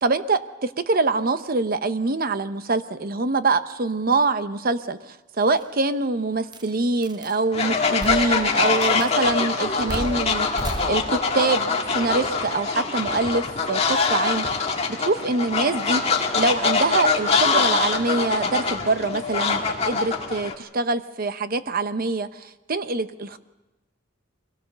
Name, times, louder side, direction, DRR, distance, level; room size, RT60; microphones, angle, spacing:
voice 1, 0.0-10.5 10.8-23.4, right 3 dB, 50° right, 11 dB, 0.9 m, -24 dB
sound 1, 5.6-5.7 6.5-6.7 7.0-7.4 8.0-8.6 8.8-9.2 9.9-11.4, right 2 dB, 20° right, 0.8 m, -33 dB
Fowl, 7.5-20.5, left 4 dB, 35° left, 1.8 m, -24 dB
23.5 x 17.5 x 6.8 m, 1.0 s
head